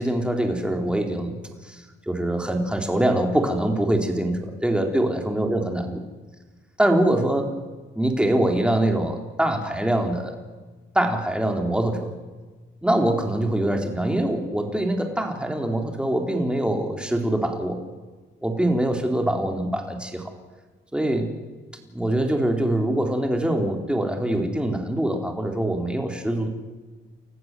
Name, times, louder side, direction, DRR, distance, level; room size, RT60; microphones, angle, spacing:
voice 1, 0.0-1.4 1.6-6.0 6.8-7.5 7.9-10.4 10.9-12.1 12.8-17.8 18.4-20.2 20.9-21.3 21.9-26.5, right 1 dB, 5° right, 3 dB, 4.2 m, -24 dB
30.0 x 14.5 x 7.8 m, 1.3 s
cardioid pair, 90°, 20 cm